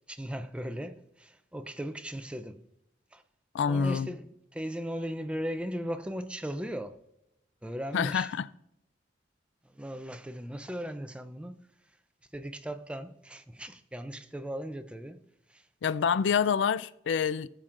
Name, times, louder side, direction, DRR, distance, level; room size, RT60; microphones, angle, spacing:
voice 1, 0.1-2.6 3.1-3.2 3.7-7.0 7.6-8.4 9.6-11.6 12.3-15.7, equal, 5° right, 0.4 m, -38 dB
voice 2, 3.5-4.1 7.9-8.5 15.8-17.5, left 6 dB, 85° left, 0.4 m, -27 dB
18.0 x 7.3 x 2.5 m
head